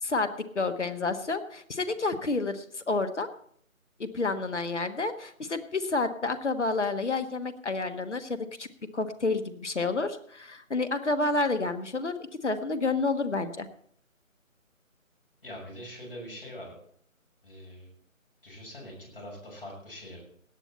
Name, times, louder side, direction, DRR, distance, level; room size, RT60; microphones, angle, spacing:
voice 1, 0.5-3.3 4.0-8.7 8.9-13.7, left 3 dB, 55° left, 9 dB, 1.5 m, -29 dB
voice 2, 15.4-16.8 17.4-17.9 18.4-20.2, equal, 40° left, -1 dB, 6.5 m, -43 dB
17.5 x 9.9 x 4.2 m, 0.62 s
figure-of-eight pair, 160°, 41 cm